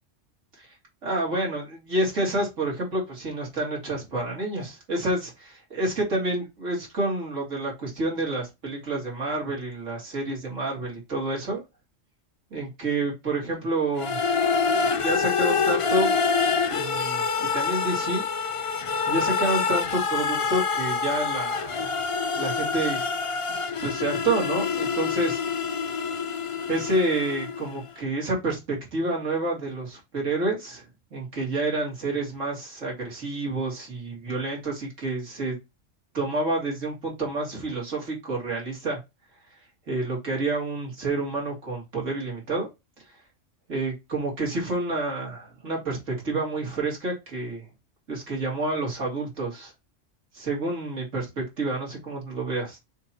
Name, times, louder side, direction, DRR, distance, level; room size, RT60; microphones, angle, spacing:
voice 1, 1.0-11.6 12.5-14.2 14.7-16.1 16.7-18.2 19.1-22.0 22.3-23.0 23.8-25.4 26.7-35.6 36.1-39.0 39.9-42.7 43.7-47.6 48.1-49.7 50.3-52.8, right 2 dB, 80° right, 3.0 m, -29 dB
sound 1, 14.0-27.8, left 5 dB, 55° left, 0.3 m, -26 dB
6.8 x 3.0 x 5.7 m
omnidirectional pair, 1.3 m